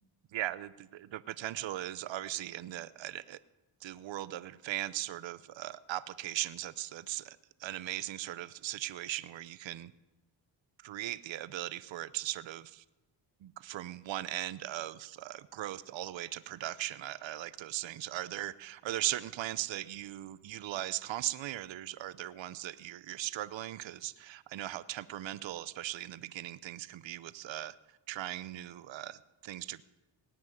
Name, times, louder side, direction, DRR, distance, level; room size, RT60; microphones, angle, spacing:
voice 1, 0.3-3.4 3.8-9.9 10.8-12.8 13.4-29.8, right 14 dB, 65° right, 17 dB, 0.7 m, -39 dB
18.5 x 6.2 x 9.3 m, 1.0 s
cardioid pair, 65°, 49 cm